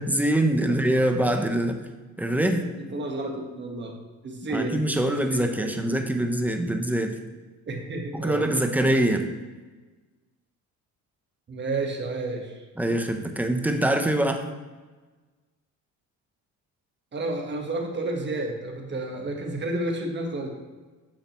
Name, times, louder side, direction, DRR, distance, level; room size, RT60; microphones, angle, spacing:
voice 1, 0.0-1.8 2.2-2.6 4.5-7.2 8.1-9.3 12.8-14.4, right 1 dB, 5° right, 5 dB, 0.7 m, -24 dB
voice 2, 2.9-3.9 4.2-5.7 7.7-8.4 11.5-12.6 17.1-20.5, right 2 dB, 35° right, 2 dB, 1.3 m, -31 dB
8.8 x 5.6 x 3.0 m, 1.3 s
cardioid pair, 100°, 33 cm